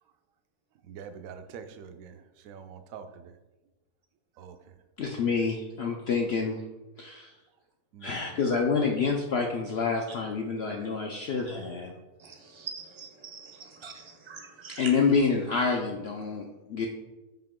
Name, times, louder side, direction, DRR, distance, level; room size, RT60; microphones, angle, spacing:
voice 1, 0.9-2.2 2.4-3.3 4.4-4.6 5.2-5.4 7.9-8.4, right 7 dB, 70° right, 8 dB, 0.9 m, -45 dB
voice 2, 5.0-6.6 7.0-7.3 8.0-11.9 14.8-16.9, left 5 dB, 70° left, 1 dB, 0.6 m, -27 dB
voice 3, 12.2-15.0, right 5 dB, 50° right, 2 dB, 0.3 m, -43 dB
5.7 x 4.8 x 3.6 m, 1.1 s
omnidirectional pair, 1.6 m